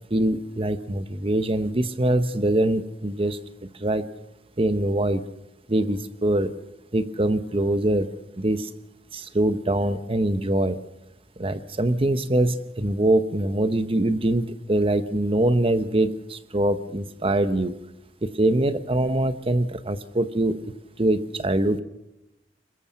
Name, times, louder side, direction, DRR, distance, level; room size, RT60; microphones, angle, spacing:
voice 1, 0.1-3.4 3.8-4.1 4.6-5.2 5.7-6.6 6.9-8.7 9.1-10.8 11.4-17.8 18.2-21.8, right 1 dB, 30° right, 12 dB, 1.0 m, -23 dB
22.0 x 21.5 x 5.8 m, 0.94 s
head